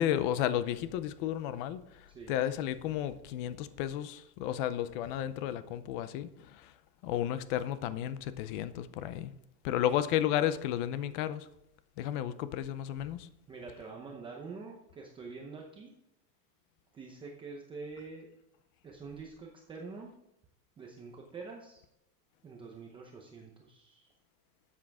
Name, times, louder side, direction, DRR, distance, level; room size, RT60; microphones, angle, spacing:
voice 1, 0.0-6.7 7.0-9.3 9.6-11.5 12.0-13.3, left 11 dB, 35° left, 13 dB, 0.6 m, -33 dB
voice 2, 13.5-15.9 16.9-18.3 18.8-20.1 20.8-21.8 22.4-24.1, right 4 dB, 10° right, 0 dB, 0.7 m, -46 dB
12.5 x 8.5 x 3.5 m, 0.84 s
supercardioid pair, 175°, 49 cm